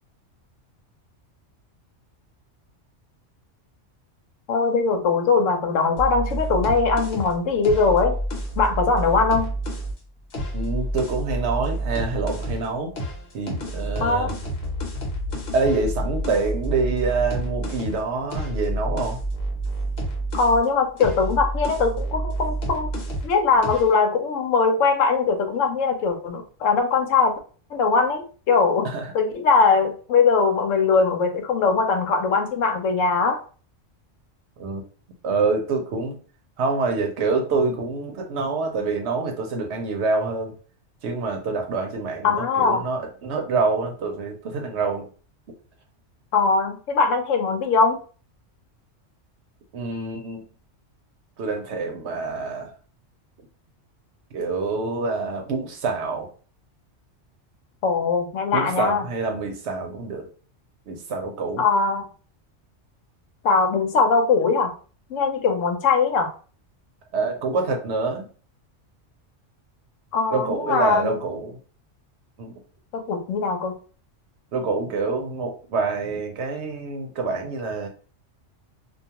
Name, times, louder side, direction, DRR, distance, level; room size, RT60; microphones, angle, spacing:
voice 1, 4.5-8.2 8.6-9.5 14.0-14.3 20.3-22.9 23.2-27.3 27.7-28.9 29.1-33.4 42.2-42.9 46.3-48.0 57.8-59.0 61.6-62.1 63.4-64.7 65.1-66.3 70.1-71.2 72.9-73.7, left 4 dB, 85° left, 4 dB, 1.0 m, -21 dB
sound 1, 6.0-9.9 10.3-12.7 13.0-20.6 21.0-23.3 23.6-23.9, right 1 dB, 60° left, 1.0 m, -29 dB
voice 2, 10.5-12.9 13.3-14.3 15.5-19.2 28.9-29.1 34.6-34.8 35.2-36.2 36.6-40.5 41.0-45.1 49.7-50.4 51.4-52.7 54.3-56.3 58.5-60.3 60.9-61.6 67.1-68.2 70.3-71.6 72.4-72.5 74.5-77.9, right 4 dB, 70° right, 3 dB, 0.9 m, -26 dB
2.4 x 2.3 x 2.8 m, 0.39 s
omnidirectional pair, 1.3 m